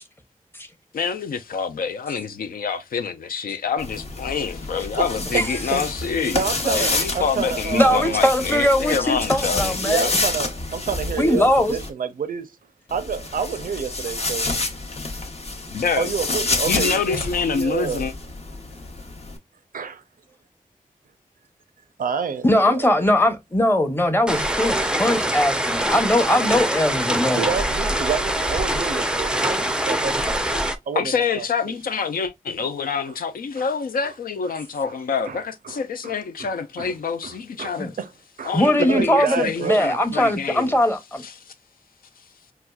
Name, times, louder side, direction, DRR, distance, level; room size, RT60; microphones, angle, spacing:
voice 1, 0.9-10.1 15.7-16.1 16.7-18.1 31.0-37.9 38.4-40.8 41.2-41.5, left 6 dB, 85° left, 0.5 m, -27 dB
sound 1, 3.8-11.9 12.9-19.4, left 2 dB, 45° left, 0.8 m, -28 dB
voice 2, 6.3-8.2 9.8-12.6 12.9-14.5 16.0-18.1 19.7-20.0 22.0-22.9 27.4-31.7 33.1-33.2 33.6-33.7 34.5-34.6 34.9-35.0 35.3-35.4 35.6-36.5 36.8-36.9 37.2-38.1 38.4-39.8, right 6 dB, 75° right, 0.5 m, -29 dB
voice 3, 7.7-10.1 11.2-11.8 22.4-27.4 29.6-29.7 37.8-37.9 38.5-41.2, left 1 dB, 15° left, 0.8 m, -20 dB
sound 2, 24.3-30.8, right 1 dB, 5° right, 0.4 m, -24 dB
4.2 x 2.4 x 2.2 m
cardioid pair, 60°, 14 cm